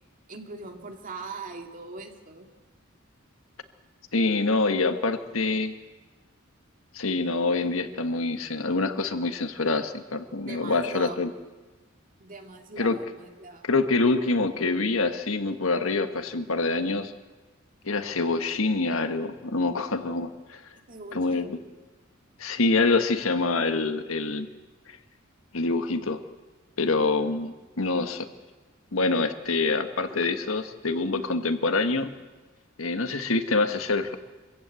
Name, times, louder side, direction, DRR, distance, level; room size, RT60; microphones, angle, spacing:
voice 1, 0.3-2.5 10.3-11.1 12.2-13.8 20.9-21.4, right 3 dB, 40° right, 4 dB, 2.3 m, -41 dB
voice 2, 4.1-5.7 6.9-11.3 12.8-13.0 13.6-17.1 17.8-20.6 21.1-21.6 22.4-24.5 25.5-26.2 26.8-28.3 28.9-32.1 32.8-34.2, left 3 dB, 85° left, 8 dB, 1.5 m, -26 dB
24.0 x 15.5 x 8.3 m, 1.2 s
head